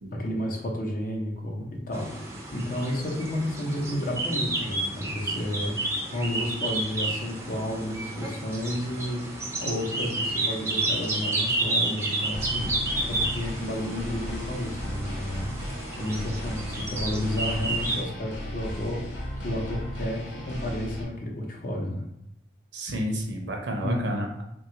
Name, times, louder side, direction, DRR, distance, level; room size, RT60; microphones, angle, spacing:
voice 1, 0.1-5.8 6.1-15.6 16.0-22.1 23.8-24.2, left 1 dB, 45° left, 0 dB, 0.6 m, -31 dB
sound 1, 1.9-18.0, right 2 dB, 15° right, 0.4 m, -31 dB
sound 2, 12.3-21.0, equal, 75° left, 0.9 m, -35 dB
voice 2, 22.7-24.4, equal, 70° right, 2 dB, 0.6 m, -31 dB
3.3 x 2.3 x 2.8 m, 0.82 s
head